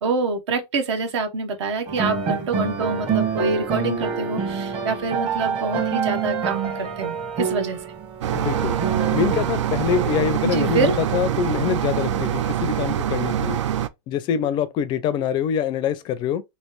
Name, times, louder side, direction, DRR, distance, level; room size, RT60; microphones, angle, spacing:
voice 1, 0.0-7.8 10.4-11.0, right 3 dB, 75° right, 1.0 m, -26 dB
sound 1, 1.9-13.2, right 6 dB, 35° right, 1.1 m, -28 dB
sound 2, 8.2-13.9, right 10 dB, 90° right, 0.4 m, -25 dB
voice 2, 8.3-8.8 9.1-13.6 14.1-16.4, left 8 dB, 30° left, 0.4 m, -25 dB
3.2 x 2.9 x 3.0 m
supercardioid pair, 135°, 15 cm